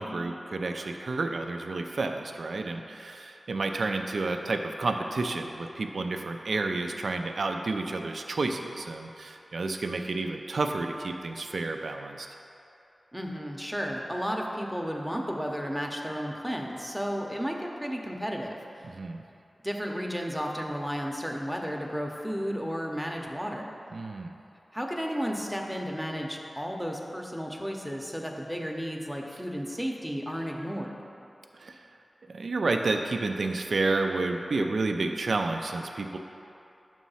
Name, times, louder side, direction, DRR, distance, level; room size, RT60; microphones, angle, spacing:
voice 1, 0.0-12.3 18.8-19.2 23.9-24.3 31.5-31.8 32.3-36.2, right 3 dB, 80° right, 5 dB, 0.3 m, -30 dB
voice 2, 13.1-18.9 19.6-23.7 24.7-31.0, equal, ahead, 0 dB, 0.7 m, -33 dB
6.9 x 3.1 x 5.5 m, 2.8 s
wide cardioid pair, 60°, 0 cm